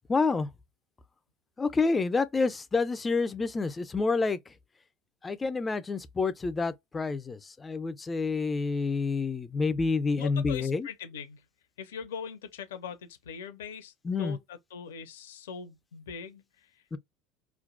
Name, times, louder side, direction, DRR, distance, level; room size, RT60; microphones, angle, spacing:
voice 1, 0.1-0.5 1.6-4.5 5.2-10.9 14.0-14.4 16.9-17.0, left 4 dB, 20° left, 0.4 m, -28 dB
voice 2, 10.1-11.4 11.8-16.7, left 7 dB, 75° left, 0.5 m, -41 dB
2.5 x 2.1 x 2.4 m
hypercardioid pair, 70°, 0 cm